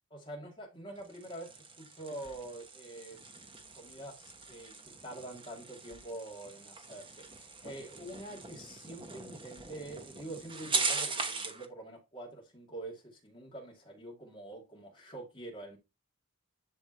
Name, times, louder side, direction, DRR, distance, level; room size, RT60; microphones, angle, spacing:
voice 1, 0.1-1.5 1.8-3.3 3.7-15.8, right 1 dB, 20° left, 2.2 m, -46 dB
sound 1, 1.0-11.7, right 4 dB, 25° right, 1.1 m, -40 dB
10.5 x 3.5 x 4.4 m
head